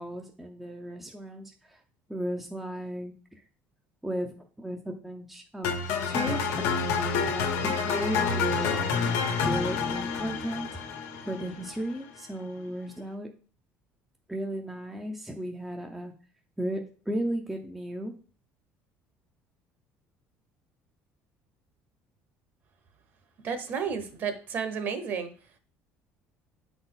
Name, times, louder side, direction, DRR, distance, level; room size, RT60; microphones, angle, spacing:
voice 1, 0.0-1.5 2.1-3.1 4.0-4.3 4.6-5.7 6.0-8.9 9.5-10.7 11.2-13.3 14.3-16.1 16.6-18.1, equal, 5° right, 2 dB, 0.5 m, -34 dB
sound 1, 5.6-11.8, left 5 dB, 85° left, 1.2 m, -28 dB
voice 2, 23.4-25.3, right 6 dB, 40° right, 8 dB, 1.0 m, -32 dB
8.7 x 4.1 x 3.9 m, 0.39 s
cardioid pair, 165°, 5 cm